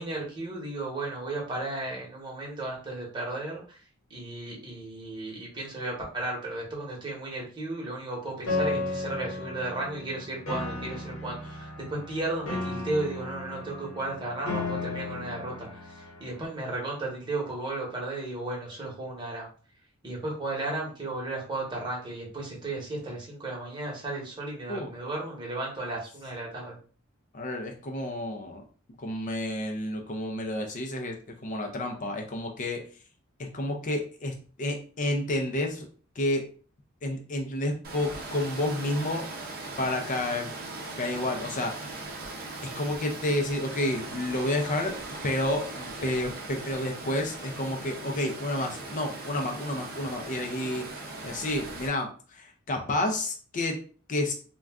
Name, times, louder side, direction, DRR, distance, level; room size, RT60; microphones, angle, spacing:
voice 1, 0.0-3.8 4.1-19.5 20.0-26.8, right 2 dB, 20° right, -3 dB, 1.0 m, -34 dB
Piano, 8.5-16.4, left 2 dB, 85° left, 0.8 m, -34 dB
voice 2, 27.3-28.6 29.0-32.8 33.4-35.9 36.2-36.5 37.0-39.3 39.8-40.5 41.0-42.0 42.6-54.3, left 1 dB, 40° left, 3 dB, 0.4 m, -30 dB
Water, 37.8-51.9, right 2 dB, 45° right, 0.6 m, -39 dB
2.4 x 2.2 x 3.4 m, 0.40 s
head